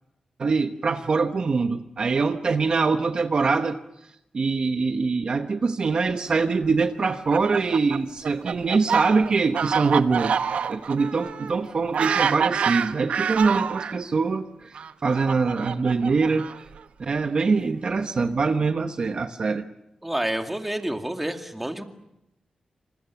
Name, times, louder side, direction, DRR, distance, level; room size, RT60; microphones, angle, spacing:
voice 1, 0.4-3.8 4.3-10.4 10.7-16.5 17.0-19.6, right 4 dB, 45° right, 8 dB, 1.0 m, -23 dB
Fowl, 7.0-14.0 14.8-16.8, right 7 dB, 85° right, 1.0 m, -27 dB
voice 2, 20.0-21.8, right 1 dB, 10° right, 6 dB, 2.2 m, -29 dB
27.5 x 26.5 x 7.1 m, 0.85 s
wide cardioid pair, 150°, 2 cm